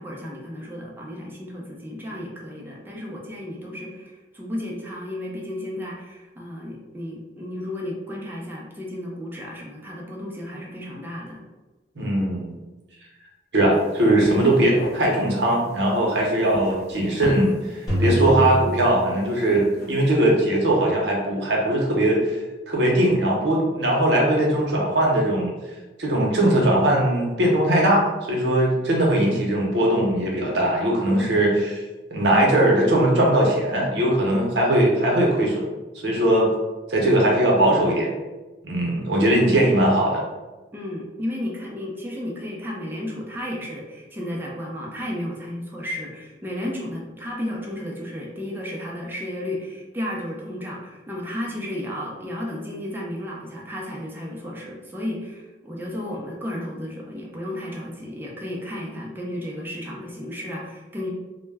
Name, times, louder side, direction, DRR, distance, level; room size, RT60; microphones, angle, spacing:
voice 1, 0.0-11.4 40.7-61.1, left 1 dB, 10° right, -3 dB, 0.4 m, -33 dB
voice 2, 12.0-12.5 13.5-22.4 22.7-25.5 26.0-31.8 32.1-35.6 36.0-36.5 36.9-38.1 38.6-40.2, right 1 dB, 70° right, -2 dB, 0.7 m, -20 dB
sound 1, 13.7-13.9 14.2-15.0 15.4-15.6 16.4-17.6 18.0-18.8 19.4-19.9, left 1 dB, 60° left, 0.4 m, -36 dB
sound 2, 17.9-20.0, equal, 20° left, 1.0 m, -25 dB
2.1 x 2.1 x 3.3 m, 1.1 s
head